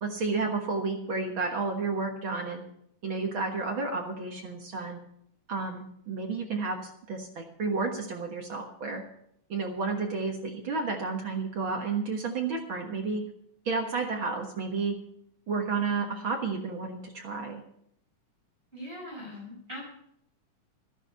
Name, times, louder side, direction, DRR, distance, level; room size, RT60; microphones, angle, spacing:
voice 1, 0.0-2.6 3.0-5.0 5.5-9.0 9.5-13.2 13.6-14.9 15.5-17.6, right 4 dB, 50° right, 2 dB, 1.7 m, -31 dB
voice 2, 18.7-19.9, left 1 dB, 15° right, -3 dB, 5.9 m, -41 dB
13.5 x 11.0 x 5.6 m, 0.72 s
omnidirectional pair, 3.8 m